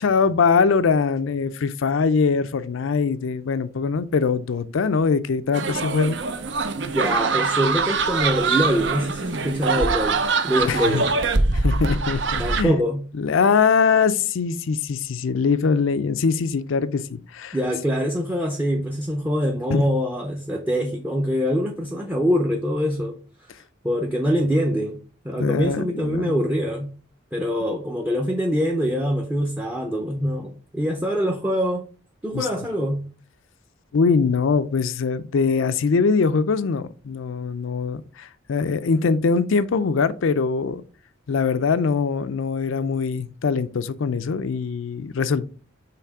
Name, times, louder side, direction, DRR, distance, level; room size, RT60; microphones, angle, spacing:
voice 1, 0.0-6.2 10.6-11.0 11.5-12.8 13.2-17.6 19.7-19.8 25.4-26.4 32.3-32.5 33.9-40.8 41.3-45.4, left 5 dB, 85° left, 0.5 m, -22 dB
sound 1, 5.5-12.6, right 4 dB, 65° right, 0.6 m, -23 dB
voice 2, 6.9-11.1 12.4-13.0 17.5-23.2 23.8-26.9 27.3-31.8 32.2-33.1, equal, 10° right, 0.6 m, -24 dB
5.8 x 3.6 x 4.7 m
head